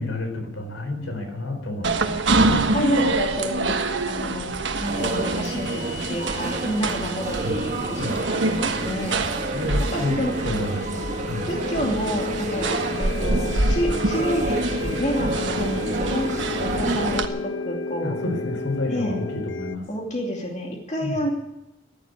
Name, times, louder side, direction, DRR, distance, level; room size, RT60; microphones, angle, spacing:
voice 1, 0.0-2.4 7.4-7.6 8.0-8.2 9.5-10.2 10.4-11.5 18.0-19.8 21.0-21.2, left 2 dB, 85° left, 5 dB, 4.5 m, -30 dB
sound 1, 1.8-17.3, right 2 dB, 70° right, 1.3 m, -26 dB
voice 2, 2.0-2.4 2.7-3.8 4.1-9.2 9.9-10.3 11.5-16.3 16.6-18.2 18.9-19.2 19.9-21.3, equal, 35° left, 0 dB, 2.6 m, -29 dB
sound 2, 4.8-17.2, right 2 dB, 40° right, 1.2 m, -30 dB
sound 3, 4.9-19.8, left 4 dB, 65° left, 0.7 m, -34 dB
15.0 x 11.5 x 8.3 m, 0.91 s
head